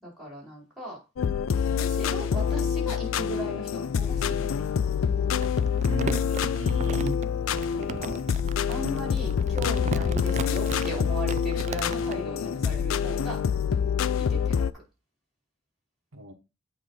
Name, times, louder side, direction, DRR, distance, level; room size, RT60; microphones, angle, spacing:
voice 1, 0.0-1.0 1.7-4.5 7.7-8.1 8.7-13.4 14.2-14.8, equal, ahead, 4.6 m, -37 dB
sound 1, 1.2-14.7, left 7 dB, 80° left, 0.4 m, -26 dB
sound 2, 4.0-10.3, left 1 dB, 35° left, 0.9 m, -45 dB
Crumpling crinkling, 5.4-12.2, right 5 dB, 35° right, 0.3 m, -36 dB
voice 2, 5.8-7.2 16.1-16.3, right 2 dB, 80° right, 1.1 m, -35 dB
8.7 x 3.0 x 5.6 m
head